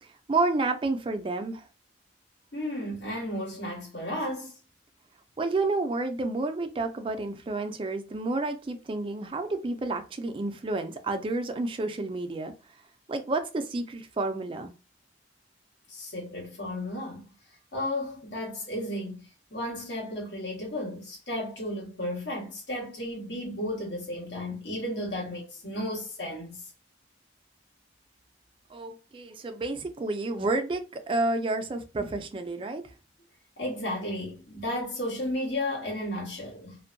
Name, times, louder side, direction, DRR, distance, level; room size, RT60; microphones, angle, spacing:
voice 1, 0.0-1.7 5.4-12.5 13.1-14.7 28.7-32.9, right 2 dB, 30° right, 0.3 m, -30 dB
voice 2, 2.5-4.6 15.9-17.2 17.7-19.2 19.5-26.6 33.6-36.8, left 1 dB, 75° left, 1.4 m, -33 dB
2.5 x 2.2 x 2.5 m
head